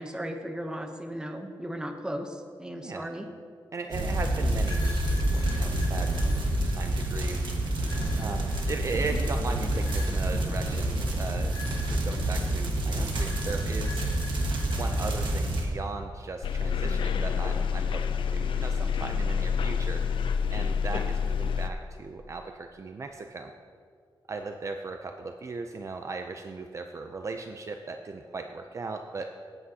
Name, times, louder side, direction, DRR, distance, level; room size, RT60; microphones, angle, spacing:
voice 1, 0.0-3.3, equal, 10° right, 5 dB, 0.8 m, -36 dB
voice 2, 3.7-6.1 6.7-7.4 8.2-14.0 14.7-20.0 20.5-23.5 24.3-29.3, right 3 dB, 35° right, 5 dB, 0.4 m, -37 dB
sound 1, 3.9-15.6, right 1 dB, 70° right, 1.4 m, -28 dB
sound 2, 4.6-7.3 7.8-9.0 9.7-10.4 11.4-12.6 13.2-15.2, left 3 dB, 45° left, 3.0 m, -45 dB
sound 3, 16.4-21.7, left 6 dB, 80° left, 0.5 m, -28 dB
17.0 x 8.3 x 2.8 m, 2.1 s
wide cardioid pair, 150°, 8 cm